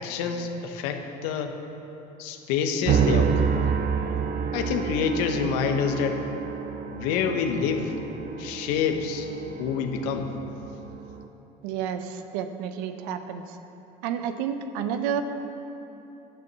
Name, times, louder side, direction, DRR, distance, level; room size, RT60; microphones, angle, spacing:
voice 1, 0.0-1.6 2.2-3.7 4.5-6.2 6.9-7.9 8.4-9.3 9.6-10.3, left 6 dB, 75° left, 5 dB, 1.1 m, -27 dB
sound 1, 2.8-11.3, right 6 dB, 45° right, 0.8 m, -29 dB
voice 2, 11.6-13.6 14.0-15.2, right 8 dB, 75° right, 8 dB, 0.8 m, -30 dB
11.0 x 6.7 x 7.4 m, 3.0 s
hypercardioid pair, 80°, 20 cm